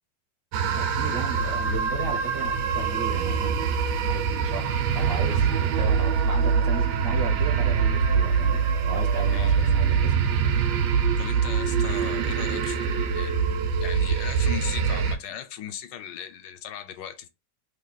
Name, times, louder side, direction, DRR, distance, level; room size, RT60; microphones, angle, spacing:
sound 1, 0.5-15.2, right 6 dB, 75° right, 1.1 m, -24 dB
voice 1, 0.7-3.8 4.1-8.6 8.9-10.3, right 3 dB, 50° right, 0.7 m, -35 dB
voice 2, 9.2-9.9 11.2-17.3, left 9 dB, 80° left, 1.2 m, -38 dB
3.1 x 2.3 x 3.7 m
omnidirectional pair, 1.9 m